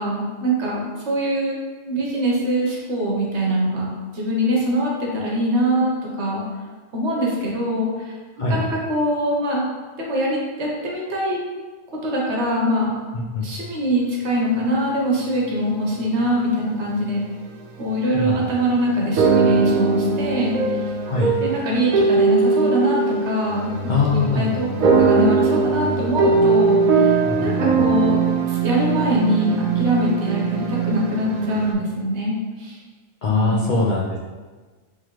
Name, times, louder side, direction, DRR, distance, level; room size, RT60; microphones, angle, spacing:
voice 1, 0.0-1.6 1.8-5.9 6.2-6.4 6.9-8.1 8.5-9.6 10.0-11.4 12.0-13.0 13.4-17.2 17.8-20.6 21.4-27.1 27.4-28.2 28.5-32.8 33.3-33.7, equal, 55° right, -3 dB, 1.0 m, -23 dB
voice 2, 13.1-13.4 18.1-18.5 21.0-21.3 23.9-24.5 27.3-27.9 33.2-34.3, left 4 dB, 60° left, -6 dB, 0.5 m, -23 dB
sound 1, 17.9-18.0 18.6-31.7, right 4 dB, 80° right, 1.0 m, -20 dB
3.9 x 3.1 x 3.0 m, 1.4 s
omnidirectional pair, 1.5 m